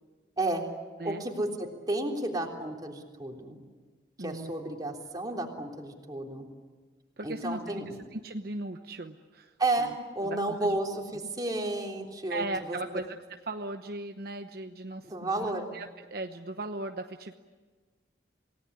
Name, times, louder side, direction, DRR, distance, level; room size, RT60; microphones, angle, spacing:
voice 1, 1.0-3.6 4.2-6.4 7.2-8.0 9.6-12.8 15.0-15.7, right 2 dB, 20° right, 1 dB, 3.5 m, -32 dB
voice 2, 4.2-4.7 7.2-7.6 7.9-9.5 9.8-9.9 10.2-10.8 12.3-13.2 13.5-17.3, right 2 dB, 55° right, 6 dB, 1.0 m, -38 dB
28.0 x 18.5 x 10.0 m, 1.4 s
head